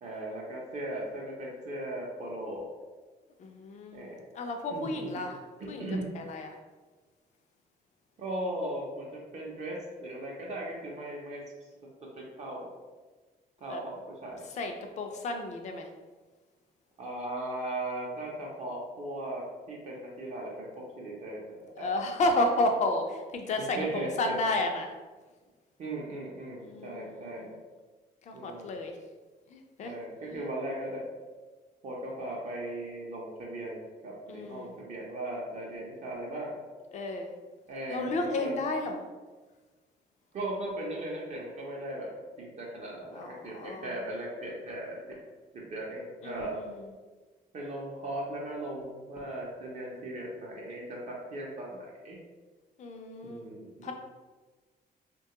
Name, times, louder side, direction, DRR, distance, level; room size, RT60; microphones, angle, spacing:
voice 1, 0.0-2.6 3.9-4.2 4.7-5.2 5.8-6.0 8.2-11.4 12.2-12.7 13.6-14.5 17.0-21.9 23.7-24.3 25.8-27.5 28.3-28.7 29.8-31.1 31.8-36.5 37.7-38.1 38.4-38.5 40.3-45.0 45.5-46.6 47.5-52.2 53.2-53.9, right 1 dB, 45° right, -3 dB, 0.5 m, -38 dB
voice 2, 3.4-4.1 4.3-5.4 5.7-5.9 6.1-6.5 13.7-13.8 14.5-15.9 21.8-24.9 26.6-27.6 28.2-29.0 29.5-30.0 30.3-30.4 34.3-34.7 36.9-37.3 37.9-39.0 43.1-44.0 46.2-46.9 52.8-53.5 53.8-53.9, left 2 dB, 45° left, 4 dB, 0.4 m, -32 dB
3.0 x 2.2 x 2.8 m, 1.3 s
cardioid pair, 160°, 16 cm